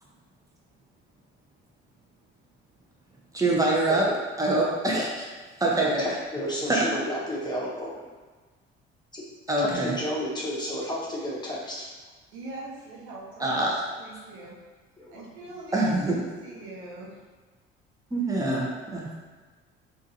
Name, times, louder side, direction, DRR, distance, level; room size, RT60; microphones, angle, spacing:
voice 1, 3.3-4.1 4.4-5.1 5.6-6.1 6.7-6.9 9.5-10.0 13.4-13.8 15.7-16.2 18.1-19.2, right 2 dB, 10° right, -4 dB, 0.9 m, -24 dB
voice 2, 5.8-8.1 9.1-9.2 9.6-11.9 15.0-15.2, equal, 15° left, -6 dB, 1.1 m, -32 dB
voice 3, 12.3-14.6 15.1-17.1, right 2 dB, 75° right, -5 dB, 0.8 m, -42 dB
3.6 x 2.6 x 2.7 m, 1.4 s
hypercardioid pair, 50°, 31 cm